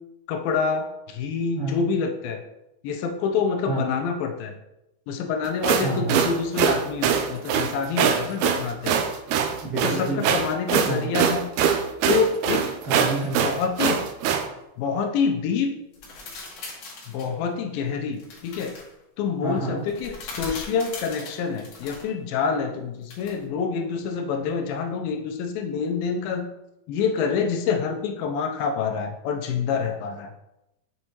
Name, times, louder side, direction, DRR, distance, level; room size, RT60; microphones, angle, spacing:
voice 1, 0.3-2.4 2.8-4.5 5.1-9.0 9.8-11.4 12.1-12.6 13.4-14.0 14.8-15.7 17.1-18.7 19.2-26.5 26.9-30.3, left 5 dB, 90° left, 4 dB, 2.6 m, -27 dB
sound 1, 5.4-14.4, right 7 dB, 90° right, 1.7 m, -23 dB
voice 2, 5.8-6.1 9.6-10.3 10.8-11.1 12.8-13.6 19.4-19.8, right 2 dB, 35° right, -8 dB, 1.8 m, -29 dB
sound 2, 15.9-17.3 18.2-18.9 19.9-22.1 23.1-23.4, left 3 dB, 65° left, 2.8 m, -39 dB
7.9 x 5.4 x 2.9 m, 0.89 s
omnidirectional pair, 4.1 m